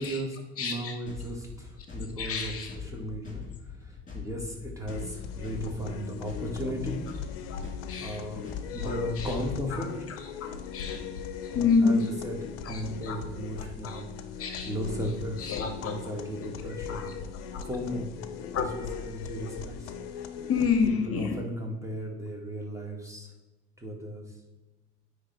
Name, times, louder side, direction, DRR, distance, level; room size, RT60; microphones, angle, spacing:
voice 1, 0.0-3.5 3.8-7.0 7.4-7.5 8.0-8.5 8.7-9.9 11.5-12.4 12.7-14.1 14.7-17.1 17.7-18.1 18.5-19.9 20.9-23.3 23.8-24.4, equal, 10° right, 0 dB, 2.0 m, -36 dB
voice 2, 0.6-1.0 2.2-2.8 6.6-6.7 7.5-7.6 7.9-8.2 8.7-9.3 9.7-10.3 10.7-11.1 11.4-12.1 12.6-13.2 13.5-14.0 14.4-14.7 15.4-16.1 16.4-16.5 16.9-17.1 17.5-17.6 18.5-18.7 20.5-21.4, left 5 dB, 50° left, 6 dB, 0.8 m, -29 dB
sound 1, 1.1-9.8, left 6 dB, 25° left, 2.1 m, -42 dB
sound 2, 4.9-20.9, left 7 dB, 85° left, 0.6 m, -39 dB
9.5 x 3.3 x 3.5 m, 1.1 s
hypercardioid pair, 65°, 29 cm